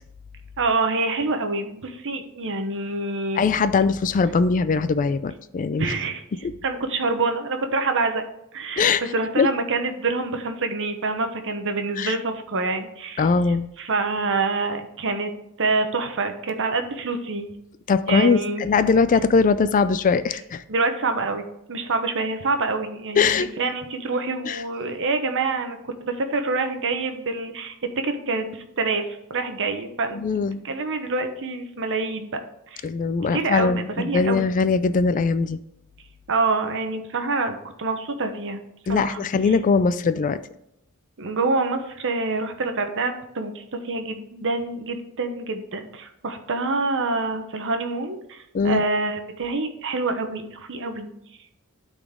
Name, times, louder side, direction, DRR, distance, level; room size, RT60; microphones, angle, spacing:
voice 1, 0.6-3.4 5.8-6.2 6.6-8.2 8.5-13.3 13.8-15.3 15.6-17.5 18.1-18.6 20.7-30.2 30.6-32.4 32.7-32.9 33.3-34.5 36.3-38.6 38.9-39.5 41.2-51.1, right 3 dB, 60° right, 7 dB, 1.0 m, -26 dB
voice 2, 3.4-5.9 6.4-6.5 8.8-9.0 9.4-9.5 12.0-12.1 13.2-13.7 17.9-20.6 23.2-23.5 24.5-24.6 30.1-30.7 32.8-35.6 38.9-40.4 48.5-48.8, left 5 dB, 35° left, 13 dB, 0.3 m, -21 dB
12.0 x 4.1 x 3.6 m, 0.82 s
head